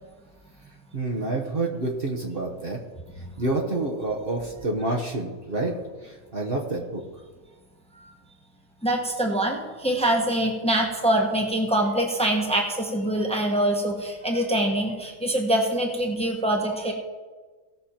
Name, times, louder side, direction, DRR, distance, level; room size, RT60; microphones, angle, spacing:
voice 1, 0.9-2.8 3.4-5.7 6.0-7.0, right 2 dB, 45° right, -1 dB, 1.4 m, -28 dB
voice 2, 8.8-16.9, right 1 dB, 5° left, 1 dB, 1.3 m, -24 dB
17.0 x 6.4 x 4.4 m, 1.3 s
omnidirectional pair, 1.4 m